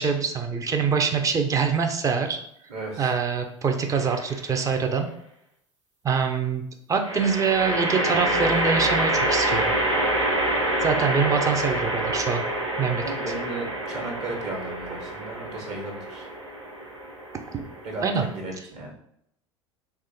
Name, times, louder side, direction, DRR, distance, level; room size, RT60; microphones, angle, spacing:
voice 1, 0.0-2.4 3.0-5.1 6.0-6.6 6.9-9.7 10.8-12.4 12.8-13.0 17.5-17.6 18.0-18.3, right 5 dB, 20° right, 4 dB, 0.5 m, -24 dB
voice 2, 2.7-3.1 13.0-16.3 17.8-18.9, right 2 dB, 45° right, 0 dB, 1.1 m, -35 dB
sound 1, 3.9-4.5 7.0-18.4, right 1 dB, 85° right, 0.7 m, -27 dB
3.0 x 2.4 x 4.1 m, 0.74 s
figure-of-eight pair, 70°, 15 cm